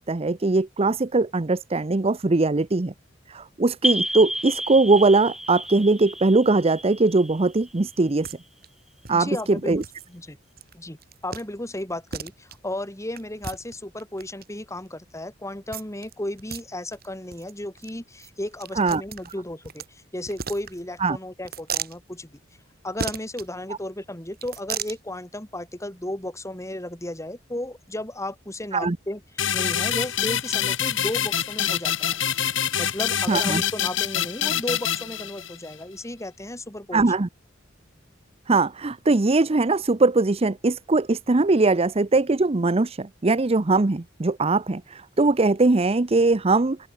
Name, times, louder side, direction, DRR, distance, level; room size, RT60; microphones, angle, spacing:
voice 1, 0.1-2.9 3.3-8.3 9.1-9.8 18.8-19.0 21.0-21.2 28.7-29.0 33.3-33.6 36.9-37.3 38.5-46.8, right 3 dB, 30° right, 0.7 m, -21 dB
sound 1, 3.8-8.3, right 1 dB, ahead, 1.5 m, -31 dB
sound 2, 8.2-8.4 8.6-8.7 9.1-9.2 9.8-10.1 10.6-10.7 11.0-11.4 11.8-11.9 12.1-12.6 13.2-14.4 15.7-16.1 16.4-16.6 16.9-17.1 17.3-17.5 17.8-17.9 18.2-19.9 20.3-21.0 21.4-22.0 23.0-23.5 24.3-25.0, right 6 dB, 55° right, 4.8 m, -34 dB
voice 2, 9.1-9.7 10.1-10.4 10.7-11.0 11.2-22.4 22.8-32.2 32.8-37.1, left 1 dB, 15° left, 3.6 m, -34 dB
sound 3, 29.4-35.7, left 9 dB, 90° left, 3.8 m, -26 dB
open air
head